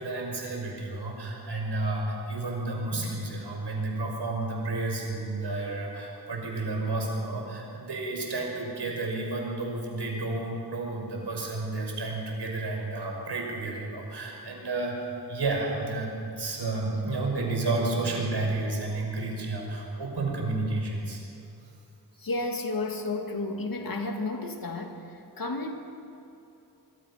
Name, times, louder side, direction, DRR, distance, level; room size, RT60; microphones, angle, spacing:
voice 1, 0.0-21.2, right 2 dB, 85° right, -1 dB, 6.0 m, -31 dB
voice 2, 22.2-25.7, left 2 dB, 55° left, 3 dB, 2.4 m, -32 dB
24.5 x 23.5 x 5.9 m, 2.8 s
wide cardioid pair, 120°, 40 cm